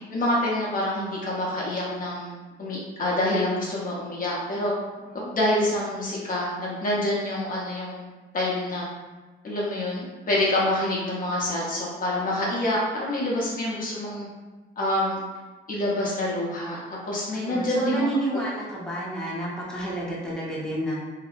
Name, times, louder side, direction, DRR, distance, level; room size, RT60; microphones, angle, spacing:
voice 1, 0.1-2.3 2.6-4.7 5.3-8.1 8.3-8.9 9.4-14.3 14.8-15.2 15.7-16.8 17.0-18.1, left 1 dB, 45° left, -5 dB, 0.6 m, -26 dB
voice 2, 17.3-21.0, right 1 dB, 5° left, -7 dB, 0.7 m, -30 dB
2.7 x 2.0 x 2.4 m, 1.2 s
cardioid pair, 90°, 20 cm